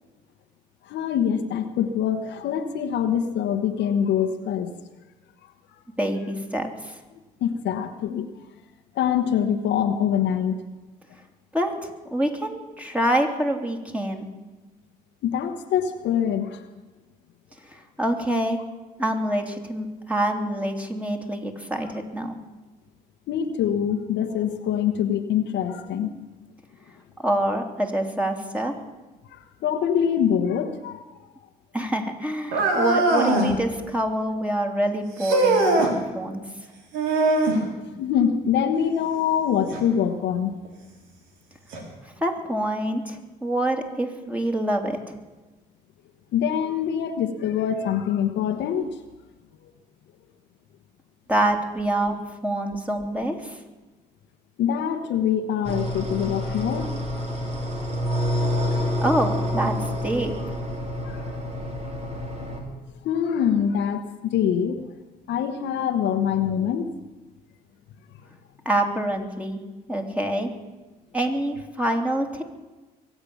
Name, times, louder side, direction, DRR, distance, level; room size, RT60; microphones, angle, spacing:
voice 1, 0.9-4.8 5.4-5.5 7.4-8.4 8.9-10.6 15.2-16.7 23.3-26.2 29.2-31.3 35.6-35.7 37.3-37.6 38.0-40.5 46.3-49.0 49.6-49.7 54.6-57.1 58.7-58.8 61.0-61.2 62.7-62.8 63.0-64.9 65.3-66.9, left 8 dB, 70° left, 7 dB, 1.2 m, -24 dB
voice 2, 6.0-7.0 11.5-14.3 17.7-18.6 19.0-22.4 27.2-28.7 31.7-36.4 42.0-45.2 51.3-52.2 52.4-53.6 59.0-59.8 60.0-60.3 68.6-69.6 69.9-70.5 71.1-72.4, right 1 dB, 5° right, 3 dB, 3.0 m, -26 dB
sound 1, 32.5-33.5 35.2-35.9 36.9-37.6 39.7-39.8 40.6-40.7 41.7-41.8, right 2 dB, 80° right, 3.0 m, -21 dB
sound 2, 55.6-62.6, equal, 35° right, 3.7 m, -28 dB
23.0 x 8.7 x 7.1 m, 1.2 s
hypercardioid pair, 60°, 19 cm